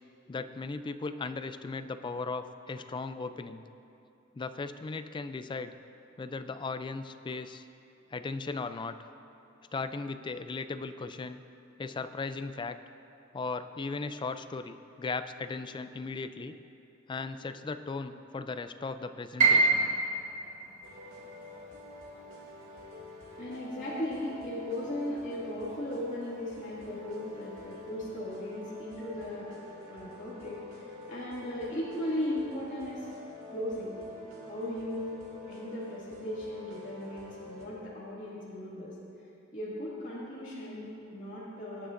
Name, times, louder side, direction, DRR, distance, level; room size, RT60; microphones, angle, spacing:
voice 1, 0.3-3.6 4.3-5.7 6.2-7.6 8.1-9.0 9.7-11.4 11.8-12.8 13.3-16.5 17.1-19.9, left 4 dB, 25° left, 10 dB, 0.3 m, -37 dB
Piano, 19.4-25.3 25.7-26.8 27.2-27.3 28.0-28.4, right 3 dB, 40° right, 2.6 m, -30 dB
sound 1, 20.8-37.7, left 2 dB, 80° right, 2.0 m, -47 dB
voice 2, 23.4-29.5 29.8-33.1 33.5-33.9 34.5-35.2 35.5-38.9 39.5-41.9, left 1 dB, 40° left, -9 dB, 2.2 m, -37 dB
18.0 x 9.7 x 2.5 m, 2.9 s
head